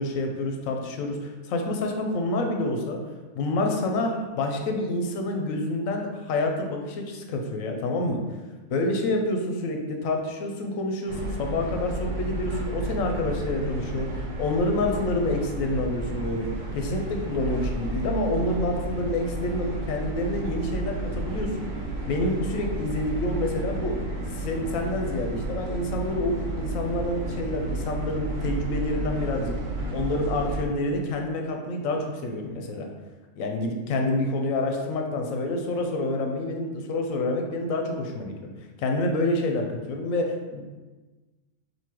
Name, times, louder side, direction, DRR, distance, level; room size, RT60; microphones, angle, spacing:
voice 1, 0.0-3.0 3.3-8.2 8.7-21.7 22.1-24.0 24.3-29.5 29.9-32.9 33.4-38.5 38.8-40.6, left 2 dB, 85° left, 3 dB, 1.0 m, -28 dB
sound 1, 11.1-30.7, right 2 dB, 80° right, 1.2 m, -32 dB
5.4 x 2.7 x 2.9 m, 1.3 s
omnidirectional pair, 1.4 m